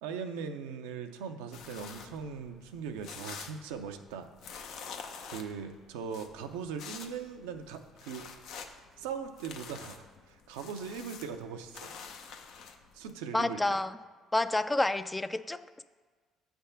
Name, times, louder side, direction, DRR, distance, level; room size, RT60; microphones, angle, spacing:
voice 1, 0.0-4.3 5.3-8.3 9.0-11.9 12.9-13.8, right 6 dB, 85° right, 7 dB, 0.5 m, -40 dB
sound 1, 1.5-13.1, left 6 dB, 70° left, 0.6 m, -48 dB
voice 2, 13.3-14.0 14.3-15.8, left 2 dB, 15° left, 12 dB, 0.3 m, -29 dB
8.0 x 3.4 x 5.6 m, 1.5 s
hypercardioid pair, 65°, 0 cm